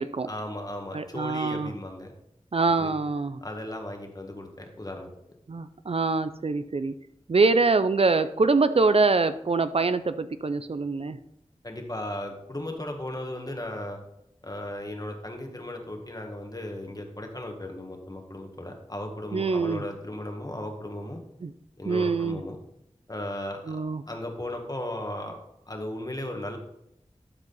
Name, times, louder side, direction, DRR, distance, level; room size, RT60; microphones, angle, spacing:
voice 1, 0.3-2.1 2.7-2.9 3.4-5.1 11.6-14.0 14.4-21.2 21.8-22.6 23.1-23.8 24.1-25.4 25.6-26.6, left 1 dB, 30° left, 3 dB, 1.7 m, -36 dB
voice 2, 0.9-1.7 2.5-3.4 5.5-6.9 7.3-11.2 19.3-19.8 21.4-21.5 21.9-22.4 23.7-24.0, right 3 dB, 55° right, 12 dB, 0.4 m, -24 dB
12.5 x 4.9 x 4.1 m, 0.80 s
wide cardioid pair, 45°, 12 cm